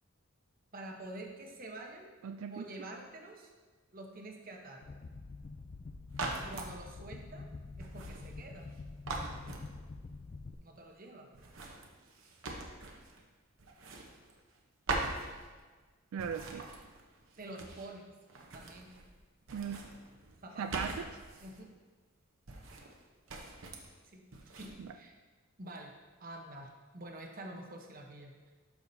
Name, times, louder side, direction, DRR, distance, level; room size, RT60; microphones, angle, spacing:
voice 1, 0.7-2.1 2.5-3.5 3.9-4.8 6.4-7.5 7.8-8.7 10.6-11.3 17.4-18.1 18.5-18.9 20.4-20.7 21.4-21.7 24.1-24.2 24.6-25.1 25.6-25.9 26.2-28.5, right 1 dB, 45° right, 1 dB, 0.9 m, -47 dB
voice 2, 2.2-2.7 16.1-16.6 19.5-19.9 20.6-21.1 24.8-24.9, right 7 dB, 85° right, 8 dB, 0.3 m, -38 dB
sound 1, 4.8-10.5, left 3 dB, 35° left, 0.3 m, -47 dB
sound 2, 6.1-6.7 7.8-8.8 9.1-10.1 11.3-13.2 13.6-14.6 14.9-15.8 16.2-18.0 18.3-19.2 19.4-21.6 22.5-23.0 23.3-23.9 24.3-24.7, right 2 dB, 70° right, 0.9 m, -42 dB
12.0 x 4.8 x 2.7 m, 1.4 s
head